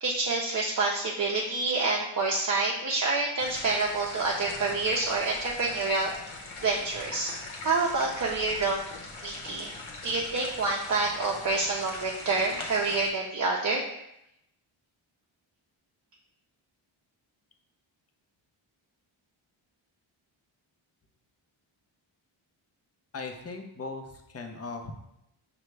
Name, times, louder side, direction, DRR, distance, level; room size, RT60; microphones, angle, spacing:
voice 1, 0.0-6.1 6.6-7.3 7.6-8.8 9.2-9.7 10.0-13.8, right 3 dB, 35° right, -3 dB, 0.6 m, -27 dB
sound 1, 3.4-13.1, left 3 dB, 75° left, 0.9 m, -41 dB
voice 2, 23.1-24.9, left 3 dB, 30° left, 4 dB, 0.6 m, -38 dB
5.6 x 2.3 x 3.2 m, 0.81 s
cardioid pair, 70°, 49 cm